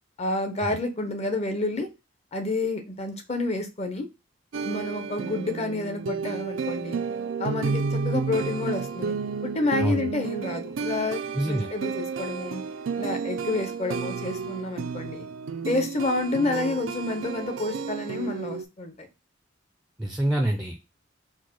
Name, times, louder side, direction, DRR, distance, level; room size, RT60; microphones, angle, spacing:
voice 1, 0.2-1.9 2.3-4.1 4.6-7.0 7.4-9.2 9.4-12.6 13.0-15.3 15.7-19.1, left 2 dB, 35° left, 7 dB, 0.7 m, -29 dB
sound 1, 4.5-18.6, right 5 dB, 85° right, 0.4 m, -31 dB
voice 2, 11.4-11.7 20.0-20.8, right 1 dB, 5° right, 2 dB, 0.4 m, -26 dB
4.4 x 2.1 x 4.5 m, 0.27 s
head